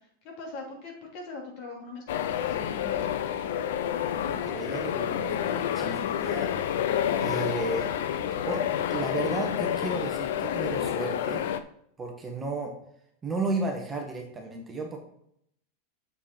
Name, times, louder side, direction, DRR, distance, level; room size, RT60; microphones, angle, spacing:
voice 1, 0.2-3.0, left 3 dB, 50° left, 0 dB, 2.7 m, -41 dB
sound 1, 2.1-11.6, left 9 dB, 75° left, 0.6 m, -29 dB
voice 2, 4.2-6.5 6.8-7.9 8.5-11.4 12.0-12.7 13.2-15.0, right 3 dB, 15° right, 1 dB, 1.4 m, -34 dB
7.0 x 6.8 x 4.4 m, 0.70 s
supercardioid pair, 150°, 0 cm